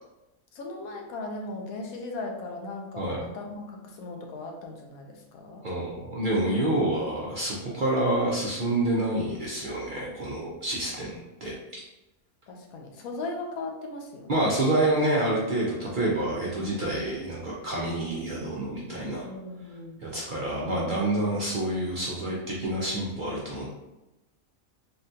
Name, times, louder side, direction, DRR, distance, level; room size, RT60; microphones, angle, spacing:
voice 1, 0.5-5.6 12.5-14.4 19.2-20.0, left 2 dB, 85° left, 1 dB, 1.1 m, -38 dB
voice 2, 5.6-11.5 14.3-19.3 20.0-23.7, right 1 dB, 55° right, -5 dB, 0.5 m, -28 dB
3.6 x 2.2 x 2.6 m, 0.97 s
omnidirectional pair, 1.4 m